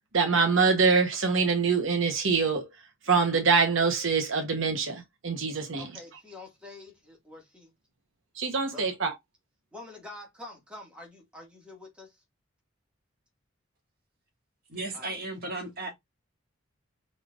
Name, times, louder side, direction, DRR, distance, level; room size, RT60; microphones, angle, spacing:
voice 1, 0.1-5.9 8.3-9.2, right 5 dB, 70° right, 1.0 m, -25 dB
voice 2, 5.8-7.7 8.7-8.9 9.7-12.2 14.9-15.2, left 2 dB, 5° right, 1.8 m, -46 dB
voice 3, 14.7-15.9, right 2 dB, 45° right, 1.8 m, -35 dB
4.9 x 4.2 x 2.4 m
head